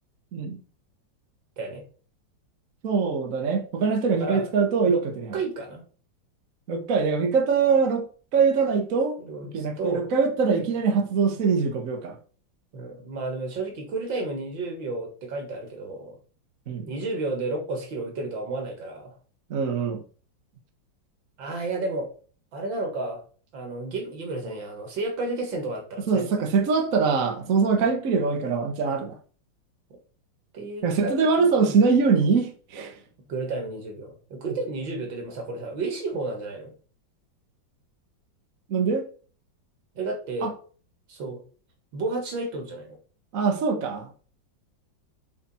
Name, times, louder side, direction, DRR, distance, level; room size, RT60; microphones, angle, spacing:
voice 1, 2.8-5.0 6.7-8.0 8.3-9.2 9.5-12.2 16.7-16.9 19.5-20.0 26.1-29.2 30.8-33.0 38.7-39.0 40.4-40.5 43.3-44.1, right 5 dB, 50° right, 1.3 m, -23 dB
voice 2, 4.1-4.5 4.8-5.0 5.3-5.8 8.7-8.9 9.2-10.1 10.6-10.7 12.7-16.2 16.9-19.1 21.4-22.1 22.5-23.2 23.5-26.3 27.9-28.0 30.5-31.8 33.3-36.7 40.0-40.5 41.1-41.4 41.9-43.0, right 2 dB, 75° right, 2.6 m, -32 dB
7.1 x 4.3 x 4.3 m
omnidirectional pair, 2.1 m